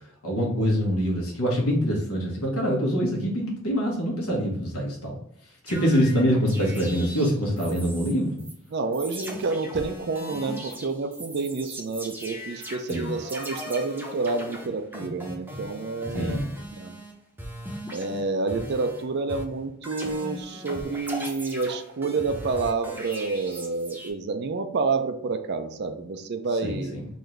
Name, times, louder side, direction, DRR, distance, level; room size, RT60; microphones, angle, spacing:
voice 1, 0.2-5.2 5.6-8.4 12.9-13.1 16.1-16.5 26.6-27.1, equal, 90° left, -2 dB, 1.4 m, -25 dB
sound 1, 5.7-8.1 8.4-8.5 8.9-17.1 17.4-19.0 19.3-24.1, equal, 10° right, 0.7 m, -38 dB
voice 2, 8.7-16.4 16.7-17.0 17.9-26.9, right 3 dB, 50° right, 8 dB, 0.4 m, -29 dB
3.9 x 2.6 x 3.2 m, 0.74 s
head